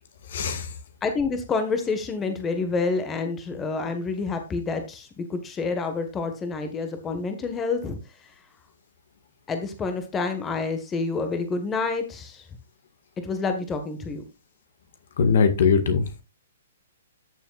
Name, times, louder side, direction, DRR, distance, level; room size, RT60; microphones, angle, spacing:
voice 1, 0.2-0.8 15.2-16.1, left 5 dB, 60° left, 1.9 m, -21 dB
voice 2, 1.0-8.0 9.5-12.4 13.2-14.2, left 4 dB, 15° left, 1.5 m, -28 dB
13.5 x 7.0 x 2.5 m
figure-of-eight pair, 120°, 0 cm